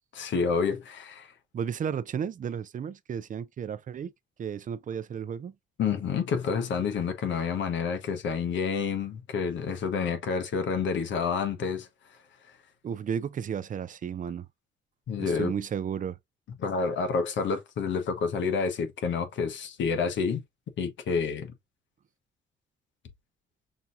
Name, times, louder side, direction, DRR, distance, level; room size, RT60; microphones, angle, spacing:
voice 1, 0.2-1.3 5.8-11.9 15.1-15.5 16.6-20.4 20.8-21.5, left 5 dB, 70° left, 1.0 m, -29 dB
voice 2, 1.5-4.1 4.4-5.5 12.8-14.5 15.2-16.2, right 7 dB, 40° right, 0.5 m, -33 dB
5.9 x 2.7 x 2.5 m
cardioid pair, 90°, 20 cm